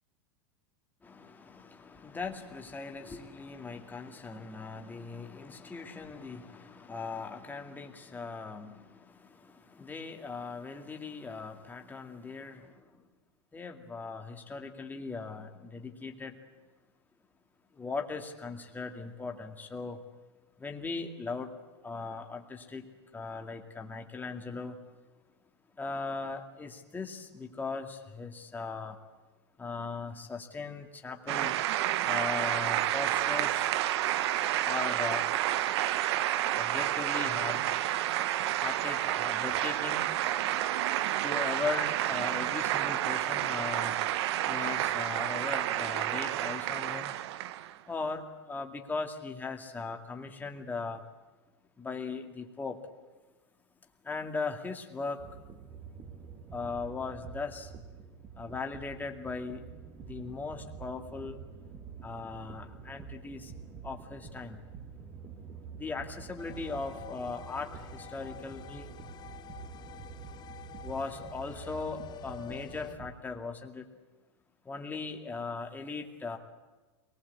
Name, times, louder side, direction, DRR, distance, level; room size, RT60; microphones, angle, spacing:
voice 1, 1.0-13.0 13.5-16.4 17.7-20.0 20.6-21.6 21.8-22.9 23.1-24.8 25.8-29.0 29.6-31.6 32.0-33.7 34.6-35.4 36.5-37.6 38.5-40.0 41.2-43.9 44.5-47.2 47.9-51.0 51.8-52.8 54.0-55.2 56.5-57.7 58.3-59.7 60.0-61.4 62.0-63.5 63.8-64.6 65.8-68.9 70.8-73.9 74.6-76.4, left 4 dB, 10° left, 3 dB, 2.2 m, -39 dB
sound 1, 31.3-47.8, right 13 dB, 70° right, 0.9 m, -30 dB
sound 2, 55.2-73.1, right 6 dB, 30° right, 2.2 m, -47 dB
sound 3, 66.4-73.0, left 11 dB, 30° left, 0.8 m, -49 dB
23.5 x 19.5 x 8.3 m, 1.2 s
supercardioid pair, 130°, 14 cm